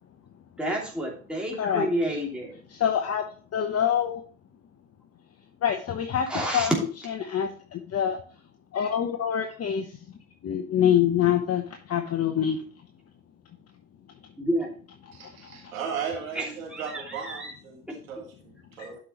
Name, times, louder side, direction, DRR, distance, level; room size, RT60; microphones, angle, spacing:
voice 1, 0.6-2.5 6.3-6.7 14.4-14.7 16.3-17.5 17.9-18.0, right 1 dB, ahead, -3 dB, 2.8 m, -29 dB
voice 2, 2.7-3.2 3.5-4.2 5.6-6.3 6.5-6.7 7.2-8.2 8.7-9.9 10.4-12.6 15.2-15.3 18.8-18.9, left 9 dB, 40° left, 5 dB, 1.0 m, -25 dB
voice 3, 15.1-17.8 18.1-19.0, right 6 dB, 85° right, 0 dB, 2.0 m, -36 dB
11.5 x 5.2 x 3.1 m, 0.42 s
hypercardioid pair, 60°, 40 cm